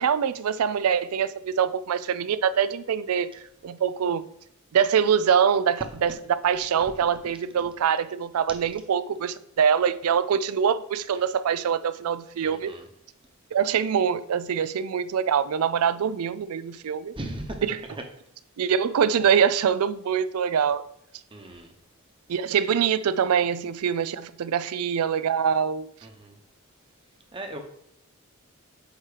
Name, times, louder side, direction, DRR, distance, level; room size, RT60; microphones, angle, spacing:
voice 1, 0.0-3.3 3.6-4.3 4.7-6.2 6.4-12.7 13.5-17.1 17.6-17.8 18.6-20.8 22.3-25.9, right 7 dB, 90° right, 0.4 m, -24 dB
voice 2, 12.4-12.8 17.2-17.6 21.3-21.7 26.2-26.3 27.3-27.6, right 1 dB, 25° right, 0.9 m, -37 dB
8.1 x 2.9 x 4.9 m
head